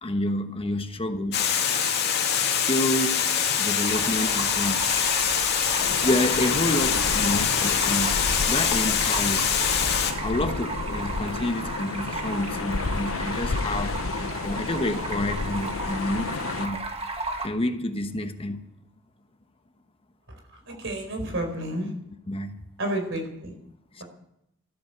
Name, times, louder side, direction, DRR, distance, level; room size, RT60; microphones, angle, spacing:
voice 1, 0.0-1.6 2.4-3.3 3.6-4.9 6.0-9.5 10.2-16.8 17.4-18.7 22.3-22.6 23.9-24.0, left 1 dB, 30° left, 8 dB, 1.0 m, -29 dB
Water, 1.3-10.1, left 8 dB, 55° left, 2.3 m, -24 dB
Stream, 3.8-17.5, right 3 dB, 30° right, 1.6 m, -35 dB
sound 1, 5.8-16.7, left 4 dB, 85° left, 0.7 m, -32 dB
voice 2, 20.7-21.9 22.8-23.5 24.0-24.1, right 1 dB, 65° right, 3 dB, 4.4 m, -30 dB
14.0 x 13.5 x 6.7 m, 0.78 s
head